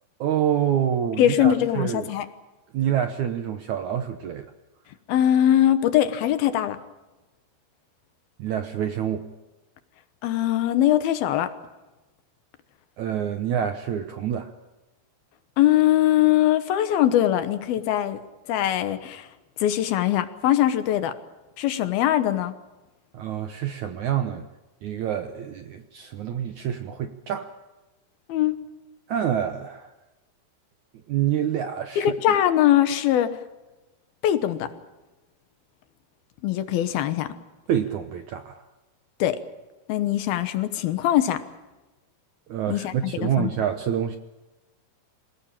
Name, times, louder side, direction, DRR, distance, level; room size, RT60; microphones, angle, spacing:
voice 1, 0.2-2.1 2.7-4.5 8.4-9.3 13.0-14.5 23.1-24.5 24.8-27.5 29.1-29.9 31.1-32.4 37.7-38.6 42.5-44.2, right 9 dB, 70° right, 8 dB, 1.8 m, -27 dB
voice 2, 1.2-2.3 5.1-6.8 10.2-11.5 15.6-18.2 18.5-19.3 19.6-21.2 21.6-22.5 28.3-28.6 32.0-33.3 34.2-34.7 36.4-37.3 39.2-39.4 39.9-41.4 42.7-43.5, left 12 dB, 75° left, 10 dB, 2.9 m, -21 dB
27.5 x 17.5 x 8.9 m, 1.1 s
omnidirectional pair, 4.6 m